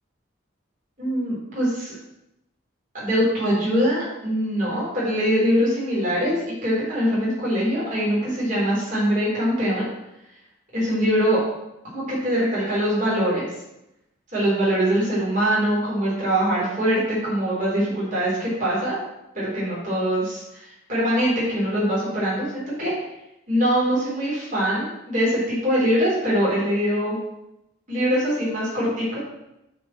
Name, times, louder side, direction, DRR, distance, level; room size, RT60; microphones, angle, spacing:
voice 1, 1.0-1.9 2.9-6.3 6.6-9.9 10.7-11.4 11.9-13.4 14.3-19.0 19.3-22.9 23.5-27.2 27.9-29.2, equal, 40° right, -7 dB, 3.6 m, -23 dB
12.5 x 4.5 x 4.3 m, 0.88 s
head